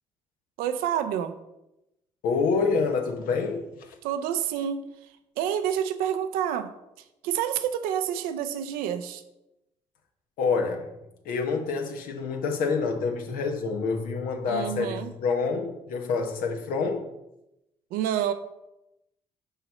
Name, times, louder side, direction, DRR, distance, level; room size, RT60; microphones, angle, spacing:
voice 1, 0.6-1.4 4.0-4.8 5.4-6.7 7.0-9.2 14.5-15.1 17.9-18.3, right 9 dB, 75° right, 8 dB, 0.6 m, -28 dB
voice 2, 2.2-4.0 10.4-10.9 11.2-17.1, left 4 dB, 70° left, 4 dB, 1.0 m, -27 dB
5.7 x 5.7 x 4.2 m, 0.88 s
hypercardioid pair, 45°, 15 cm